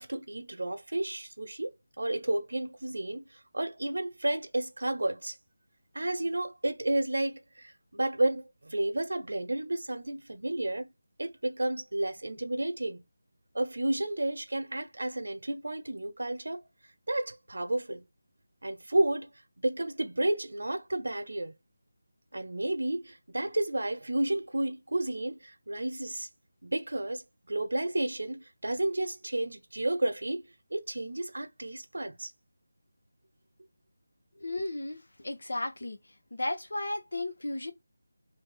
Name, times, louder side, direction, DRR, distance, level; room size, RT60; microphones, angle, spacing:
voice 1, 0.0-5.4 5.9-10.9 11.2-13.0 13.5-16.6 17.1-18.1 18.6-19.3 19.6-21.5 22.3-26.3 26.6-30.4 30.7-32.3, right 1 dB, 90° right, 0.9 m, -31 dB
voice 2, 34.4-36.0 36.3-37.7, left 2 dB, 75° left, 1.0 m, -34 dB
3.5 x 2.7 x 3.9 m
figure-of-eight pair, 175°, 0 cm